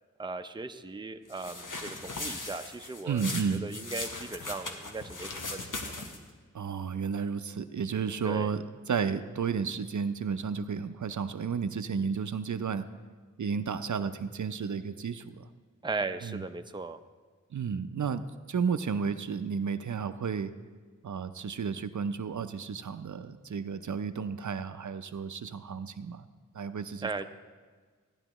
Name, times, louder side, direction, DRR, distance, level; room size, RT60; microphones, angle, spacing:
voice 1, 0.2-6.0 8.2-8.5 15.8-17.0 27.0-27.2, right 3 dB, 15° right, 8 dB, 0.5 m, -38 dB
sound 1, 1.3-6.3, left 3 dB, 90° left, 1.1 m, -39 dB
voice 2, 3.1-3.7 6.5-12.9 13.4-15.5 16.2-16.4 17.5-18.2 18.5-20.5 21.0-26.3 26.5-27.1, right 6 dB, 70° right, 10 dB, 0.5 m, -32 dB
16.5 x 10.5 x 3.0 m, 1.5 s
wide cardioid pair, 45°, 31 cm